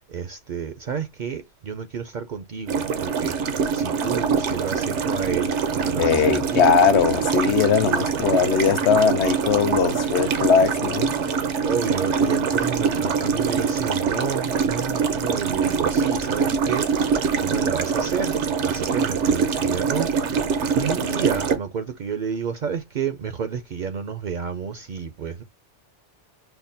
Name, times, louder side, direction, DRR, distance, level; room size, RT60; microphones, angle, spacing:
voice 1, 0.1-6.7 11.6-20.1 20.7-25.4, right 6 dB, 60° right, 0.5 m, -30 dB
sound 1, 2.7-21.6, right 6 dB, 85° right, 1.1 m, -24 dB
voice 2, 6.0-11.1, left 7 dB, 75° left, 0.9 m, -20 dB
5.7 x 2.1 x 2.5 m
omnidirectional pair, 1.2 m